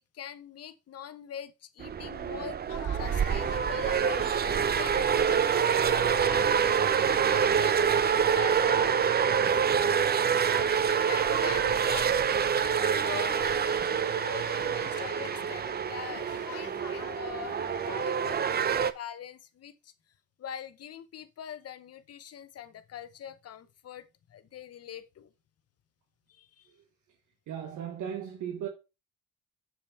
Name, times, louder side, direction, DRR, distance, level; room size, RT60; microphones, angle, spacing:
voice 1, 0.0-9.6 11.0-19.9 20.4-25.3 26.3-26.7, left 9 dB, 55° left, 0.9 m, -44 dB
sound 1, 1.8-18.9, right 7 dB, 35° right, 0.5 m, -26 dB
sound 2, 2.7-18.4, left 10 dB, 80° left, 1.0 m, -46 dB
voice 2, 27.5-28.7, right 9 dB, 80° right, 1.2 m, -36 dB
6.8 x 4.9 x 4.2 m
cardioid pair, 90°, 30 cm